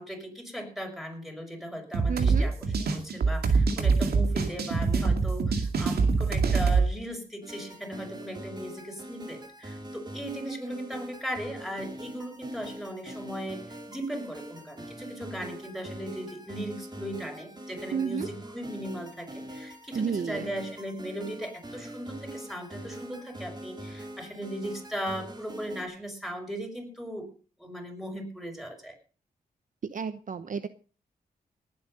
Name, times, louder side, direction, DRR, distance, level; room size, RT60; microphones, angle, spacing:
voice 1, 0.0-2.5 2.9-27.3 27.6-29.0, equal, ahead, 3 dB, 6.1 m, -38 dB
sound 1, 1.9-6.9, right 4 dB, 80° right, 2.3 m, -24 dB
voice 2, 2.1-2.5 17.9-18.3 19.9-20.5 29.8-30.7, right 6 dB, 55° right, 12 dB, 0.9 m, -31 dB
sound 2, 7.4-25.8, right 1 dB, 25° right, 4.1 m, -43 dB
19.0 x 8.8 x 5.4 m, 0.38 s
cardioid pair, 65°, 16 cm